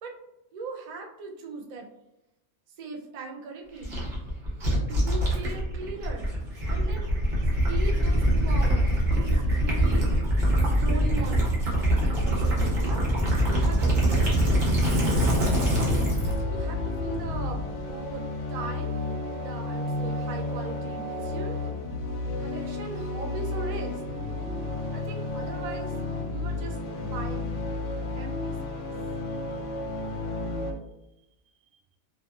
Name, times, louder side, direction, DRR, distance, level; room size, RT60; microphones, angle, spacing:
voice 1, 0.5-1.9 2.8-4.0 4.9-6.3 6.7-7.1 7.7-10.2 10.5-11.5 12.2-13.0 13.5-14.7 16.5-19.0 19.3-21.6 22.4-24.0 24.9-25.9 26.3-27.5 28.1-28.8, right 3 dB, 85° right, 1 dB, 0.3 m, -39 dB
Gurgling / Liquid, 3.8-16.4, right 1 dB, 45° right, 0.9 m, -24 dB
sound 1, 15.1-30.7, left 2 dB, 75° left, 0.9 m, -31 dB
2.5 x 2.5 x 2.3 m, 0.89 s
omnidirectional pair, 1.3 m